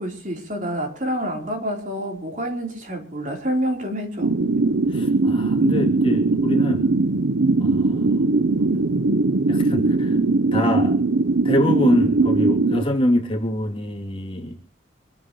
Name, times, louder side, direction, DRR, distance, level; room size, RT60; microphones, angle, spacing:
voice 1, 0.0-4.4, equal, 40° right, 3.6 m, -27 dB
sound 1, 4.2-12.8, right 3 dB, 80° right, 0.7 m, -20 dB
voice 2, 4.9-6.9 7.6-8.3 8.6-8.8 9.5-10.2 10.5-11.0 11.4-14.7, equal, 30° left, 2.7 m, -25 dB
25.5 x 14.0 x 3.0 m
head